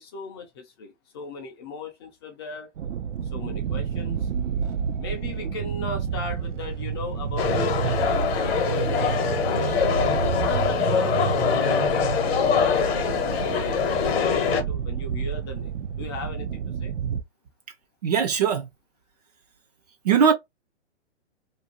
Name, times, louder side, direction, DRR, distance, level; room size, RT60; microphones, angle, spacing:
voice 1, 0.0-2.7 3.2-4.3 5.0-9.9 10.4-16.9, left 3 dB, 20° left, 0.4 m, -38 dB
sound 1, 2.8-17.2, right 7 dB, 85° right, 0.6 m, -29 dB
sound 2, 7.4-14.6, left 7 dB, 55° left, 0.8 m, -24 dB
voice 2, 18.0-18.7 20.1-20.3, right 7 dB, 35° right, 0.4 m, -20 dB
2.6 x 2.2 x 2.9 m
hypercardioid pair, 145°, 35 cm